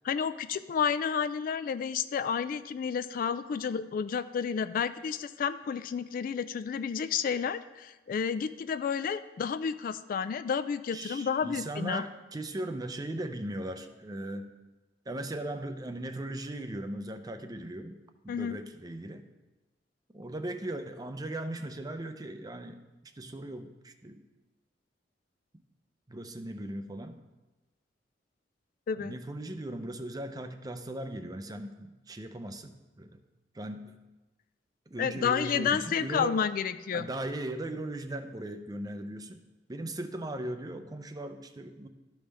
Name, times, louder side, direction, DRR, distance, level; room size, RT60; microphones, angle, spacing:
voice 1, 0.0-12.1 18.3-18.6 28.9-29.1 35.0-37.1, left 7 dB, 50° left, 12 dB, 0.3 m, -31 dB
voice 2, 10.9-14.5 15.1-19.3 20.1-22.8 23.2-24.3 26.1-27.2 29.0-33.2 33.5-34.0 34.9-36.4 36.9-39.4 39.7-41.9, right 1 dB, 20° right, 8 dB, 0.5 m, -38 dB
13.0 x 5.3 x 3.4 m, 1.1 s
head